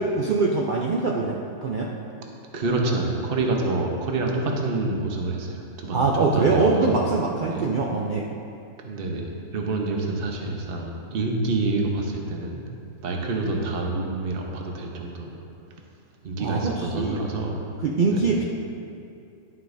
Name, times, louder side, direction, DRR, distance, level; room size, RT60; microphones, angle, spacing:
voice 1, 0.0-1.9 5.9-8.3 16.4-17.3 17.8-18.4, right 3 dB, 75° right, -2 dB, 0.4 m, -23 dB
voice 2, 2.5-7.0 7.5-7.6 8.8-9.2 9.5-12.6 13.0-15.4 16.2-17.6 18.1-18.3, right 2 dB, 45° right, 0 dB, 1.0 m, -27 dB
11.0 x 7.8 x 2.6 m, 2.6 s
omnidirectional pair, 1.6 m